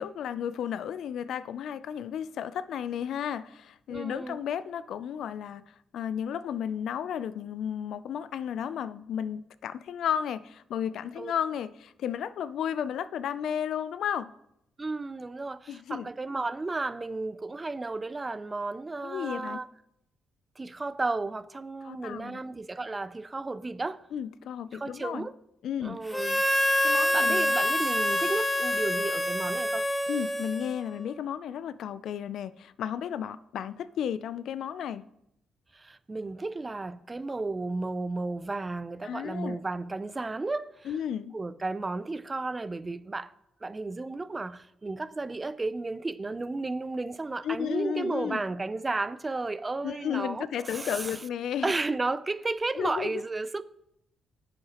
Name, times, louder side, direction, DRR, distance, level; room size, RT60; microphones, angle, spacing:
voice 1, 0.0-14.3 15.7-16.1 19.0-19.6 21.8-22.4 24.1-25.3 25.6-26.0 26.8-27.5 30.1-35.0 39.0-39.6 40.9-41.4 47.4-48.4 49.8-51.7 52.8-53.2, left 9 dB, 70° left, 0.3 m, -33 dB
voice 2, 3.9-4.4 11.2-11.3 14.8-19.7 20.6-24.0 24.7-25.3 25.8-26.4 27.1-29.9 35.7-40.9 41.3-43.3 43.6-51.2 51.6-53.6, right 3 dB, 20° right, 0.4 m, -33 dB
Harmonica, 26.1-31.0, left 1 dB, 5° left, 0.7 m, -26 dB
10.5 x 7.6 x 2.9 m
cardioid pair, 90°, 0 cm